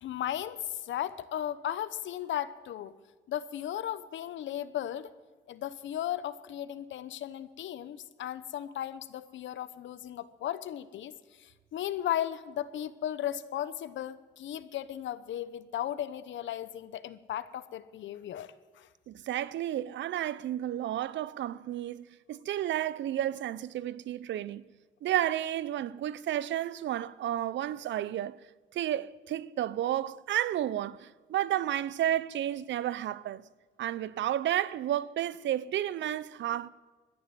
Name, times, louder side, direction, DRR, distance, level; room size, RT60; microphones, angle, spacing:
voice 1, 0.0-2.9 3.3-5.1 5.5-11.1 11.4-18.9, left 11 dB, 70° left, 0.9 m, -36 dB
voice 2, 19.1-24.6 25.0-28.4 28.7-33.4 33.8-36.7, right 12 dB, 70° right, 0.6 m, -32 dB
13.0 x 10.5 x 7.6 m
cardioid pair, 90°, 20 cm